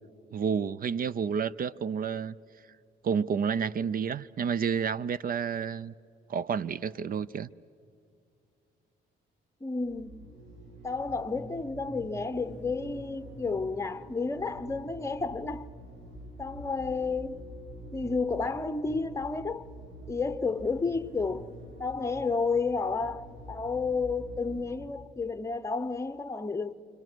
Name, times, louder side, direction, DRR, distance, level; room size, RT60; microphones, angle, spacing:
voice 1, 0.3-2.3 3.0-5.9 6.3-7.5, right 7 dB, 45° right, 0.5 m, -30 dB
voice 2, 9.6-10.2 10.8-15.7 16.4-17.5 17.9-19.7 20.1-21.5 21.8-26.7, left 4 dB, 15° left, 0.8 m, -31 dB
sound 1, 9.8-24.7, equal, 80° right, 7.0 m, -47 dB
28.5 x 25.0 x 6.2 m
cardioid pair, 90°, 20 cm